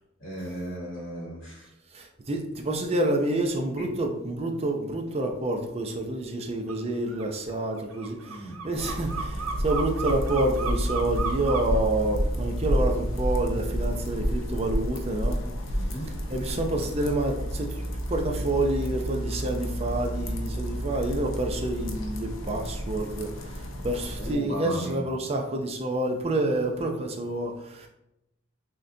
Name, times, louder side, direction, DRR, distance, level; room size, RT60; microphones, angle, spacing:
voice 1, 0.2-1.7 3.8-3.9 8.3-8.5 15.7-16.1 24.2-25.0, right 1 dB, 50° left, -4 dB, 1.0 m, -36 dB
voice 2, 1.9-15.4 16.3-17.8 18.1-27.9, right 1 dB, 30° right, 2 dB, 0.5 m, -28 dB
sound 1, 6.7-6.8 7.1-11.8, right 5 dB, 80° right, 0.5 m, -34 dB
sound 2, 8.7-24.3, equal, 65° left, 0.5 m, -30 dB
6.2 x 2.2 x 2.6 m, 0.85 s
head